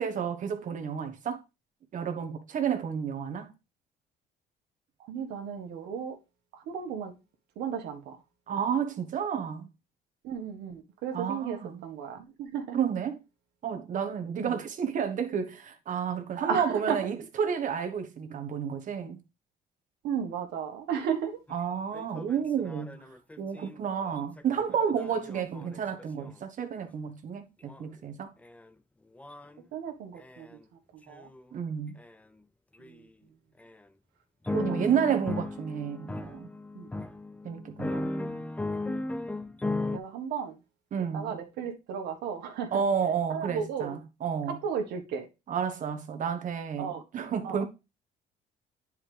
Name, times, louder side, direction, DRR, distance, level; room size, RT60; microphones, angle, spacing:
voice 1, 0.0-1.4 1.9-3.5 8.5-9.7 11.1-11.8 12.7-13.2 13.6-19.2 21.5-22.9 23.4-28.3 31.5-32.0 34.6-36.5 37.4-38.4 40.9-41.3 42.7-44.6 45.5-47.6, right 7 dB, 50° right, 1.3 m, -31 dB
voice 2, 5.1-6.2 6.5-7.1 7.5-8.2 10.2-12.8 14.4-14.6 16.4-17.0 20.0-21.4 25.3-25.5 29.7-30.6 30.9-31.3 32.8-33.1 34.5-35.0 36.7-36.9 39.9-40.6 41.1-42.7 43.3-44.0 44.5-45.3 46.8-47.0 47.4-47.6, right 7 dB, 80° right, 1.6 m, -34 dB
sound 1, 21.5-21.6 21.9-26.3 27.7-27.8 28.4-28.7 29.2-29.6 30.2-30.6 31.1-31.4 32.0-32.1 32.8-32.9 33.6-33.7 34.4-40.0, left 2 dB, 10° left, 0.5 m, -36 dB
9.8 x 4.9 x 3.4 m
cardioid pair, 110°, 17 cm